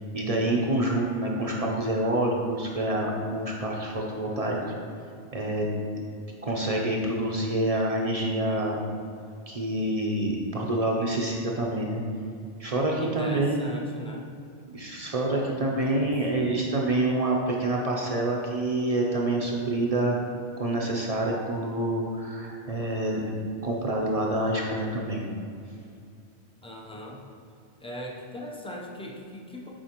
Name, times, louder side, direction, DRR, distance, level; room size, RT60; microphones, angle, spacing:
voice 1, 0.1-4.7 5.3-5.7 6.4-8.8 9.5-12.0 12.6-13.6 14.7-20.2 20.6-23.2 23.6-25.2, right 1 dB, 45° right, -1 dB, 0.5 m, -27 dB
voice 2, 13.0-14.3 16.0-16.1 26.6-27.2 27.8-29.7, left 1 dB, 10° left, -2 dB, 0.3 m, -39 dB
7.5 x 4.5 x 2.9 m, 2.4 s
omnidirectional pair, 1.1 m